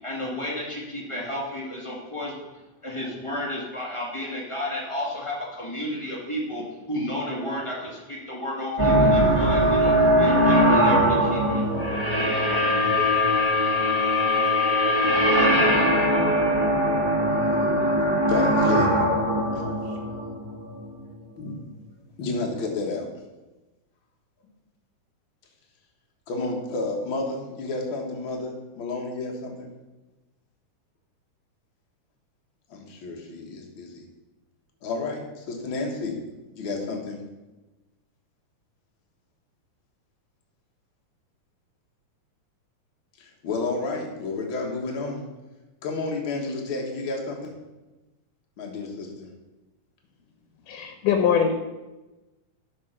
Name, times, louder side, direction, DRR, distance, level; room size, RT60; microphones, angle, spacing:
voice 1, 0.0-2.3 2.8-11.6 12.0-12.7, left 1 dB, 15° left, -4 dB, 1.1 m, -32 dB
sound 1, 8.8-20.9, equal, 15° right, 1.2 m, -21 dB
voice 2, 18.3-19.0 21.4-21.5 22.2-23.1 26.3-29.7 32.7-34.0 34.8-36.2 36.5-37.2 43.2-45.2 45.8-47.5 48.6-49.3, left 3 dB, 50° left, 0 dB, 1.8 m, -30 dB
voice 3, 50.7-51.5, left 7 dB, 85° left, 5 dB, 2.4 m, -22 dB
11.0 x 5.0 x 5.9 m, 1.1 s
omnidirectional pair, 3.7 m